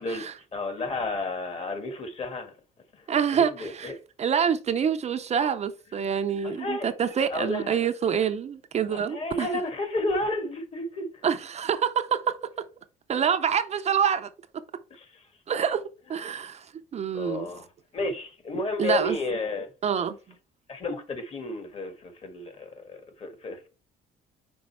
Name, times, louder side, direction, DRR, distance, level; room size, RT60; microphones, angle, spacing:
voice 1, 0.5-2.5 3.1-4.0 6.4-6.9 7.3-7.8 8.9-11.2 14.9-15.2 17.1-17.7 17.9-19.7 20.7-23.7, left 2 dB, 35° left, 1.7 m, -32 dB
voice 2, 3.1-3.9 4.2-9.5 11.2-12.3 13.1-14.3 15.5-15.8 16.1-16.7 16.9-17.5 18.8-19.2 19.8-20.1, right 7 dB, 40° right, 0.6 m, -26 dB
5.3 x 3.9 x 4.5 m
cardioid pair, 110°, 17 cm